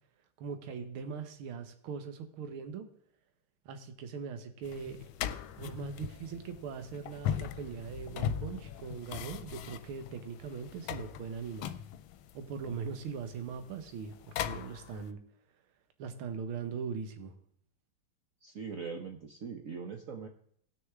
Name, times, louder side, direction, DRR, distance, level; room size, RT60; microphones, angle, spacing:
voice 1, 0.4-2.9 3.7-5.0 5.6-11.7 12.3-15.2 16.0-17.3, right 6 dB, 80° right, 8 dB, 1.9 m, -40 dB
sound 1, 4.6-15.1, left 9 dB, 85° left, 1.4 m, -40 dB
voice 2, 18.4-20.3, right 5 dB, 55° right, 3 dB, 1.0 m, -41 dB
18.0 x 6.5 x 3.6 m, 0.64 s
omnidirectional pair, 2.3 m